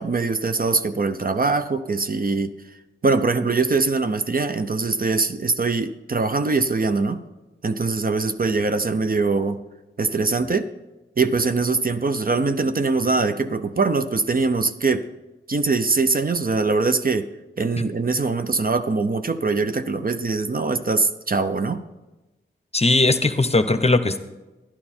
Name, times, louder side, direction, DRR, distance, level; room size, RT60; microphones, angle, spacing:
voice 1, 0.0-2.5 3.0-7.2 7.6-9.6 10.0-10.7 11.2-15.1 15.5-17.3 17.6-21.8, right 3 dB, 45° right, 9 dB, 0.7 m, -22 dB
voice 2, 22.7-24.2, left 2 dB, 30° left, 10 dB, 0.8 m, -18 dB
11.5 x 11.0 x 4.4 m, 1.1 s
cardioid pair, 50°, 21 cm